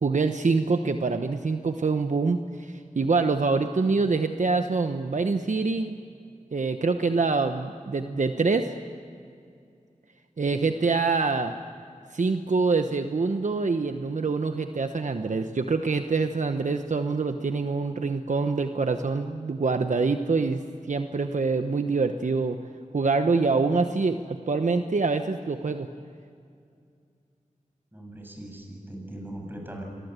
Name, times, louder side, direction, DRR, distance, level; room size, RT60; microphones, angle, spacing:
voice 1, 0.0-6.0 6.5-8.7 10.4-11.5 12.1-20.6 20.9-22.6 22.9-25.9, right 4 dB, 65° right, 7 dB, 1.1 m, -25 dB
voice 2, 27.9-29.8, right 1 dB, 15° right, 1 dB, 7.6 m, -40 dB
27.5 x 22.5 x 8.2 m, 2.4 s
wide cardioid pair, 85°, 14 cm